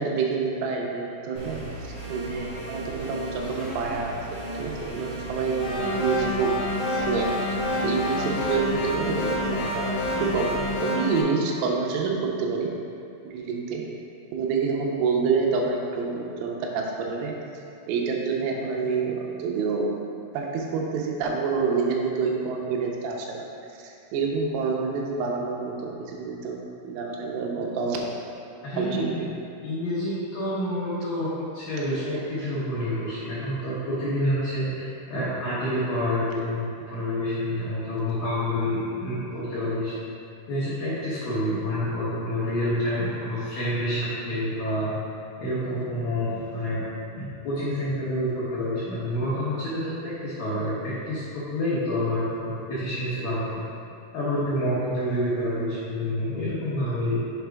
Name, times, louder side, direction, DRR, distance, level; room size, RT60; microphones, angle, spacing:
voice 1, 0.0-6.5 6.9-12.7 13.3-13.8 14.3-17.4 17.9-19.9 20.3-23.5 23.8-26.6 26.8-28.1 28.7-29.2, right 5 dB, 85° right, -1 dB, 3.4 m, -28 dB
sound 1, 1.3-10.7, right 1 dB, 55° right, 2.1 m, -36 dB
sound 2, 5.6-11.2, left 2 dB, 60° left, 3.0 m, -28 dB
voice 2, 28.6-29.2 29.6-39.9 40.5-44.9 45.4-46.8 47.2-53.7 54.1-57.2, left 1 dB, 80° left, -11 dB, 2.0 m, -28 dB
7.7 x 5.0 x 3.5 m, 2.5 s
omnidirectional pair, 5.7 m